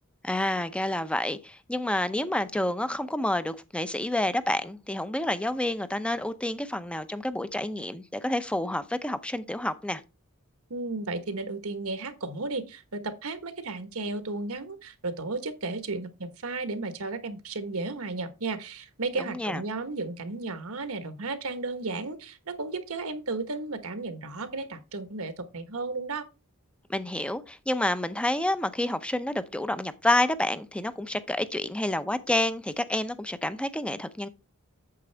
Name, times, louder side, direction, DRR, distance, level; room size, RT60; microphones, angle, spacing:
voice 1, 0.2-10.0 19.2-19.6 26.9-34.3, left 1 dB, 5° left, 0.6 m, -29 dB
voice 2, 10.7-26.2, right 3 dB, 80° right, 1.3 m, -34 dB
8.5 x 7.2 x 3.4 m
head